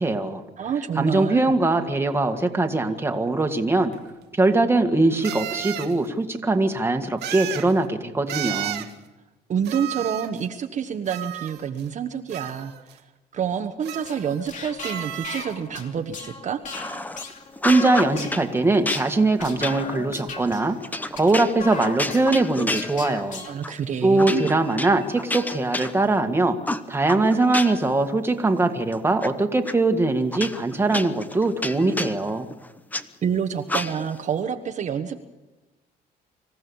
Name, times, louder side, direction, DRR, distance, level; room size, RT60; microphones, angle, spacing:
voice 1, 0.0-0.4 1.0-3.9 4.3-8.9 17.6-20.8 21.1-23.4 24.0-26.6 26.9-32.5, right 2 dB, 15° right, 5 dB, 1.8 m, -21 dB
voice 2, 0.6-1.5 9.5-13.0 13.3-16.6 23.5-24.5 33.2-35.2, right 7 dB, 45° right, 7 dB, 1.2 m, -28 dB
sound 1, 3.9-4.0 5.2-5.9 7.2-7.7 8.3-8.9 9.6-10.4 11.1-11.9 12.3-12.9 13.8-14.5 14.8-15.5, right 13 dB, 75° right, 1.6 m, -33 dB
sound 2, 13.9-23.5, left 4 dB, 50° left, 2.7 m, -37 dB
sound 3, 16.7-17.2 17.6-18.5 18.9-23.3 23.6-23.8 24.2-26.3 26.7-27.9 28.3-29.3 29.7-29.8 30.3-33.0 33.7-34.2, left 2 dB, 10° left, 1.0 m, -30 dB
26.0 x 15.0 x 7.1 m, 1.1 s
cardioid pair, 110°, 17 cm